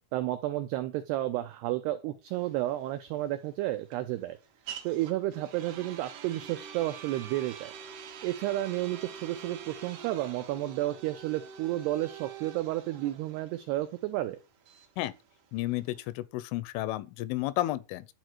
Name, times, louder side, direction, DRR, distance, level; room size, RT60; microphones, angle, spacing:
voice 1, 0.1-4.4 4.8-7.7 8.2-14.4, right 15 dB, 85° right, 2.3 m, -32 dB
sound 1, 2.3-16.1, right 7 dB, 65° right, 2.1 m, -46 dB
voice 2, 15.5-18.1, left 16 dB, 85° left, 3.2 m, -32 dB
11.5 x 4.7 x 7.8 m
omnidirectional pair, 5.6 m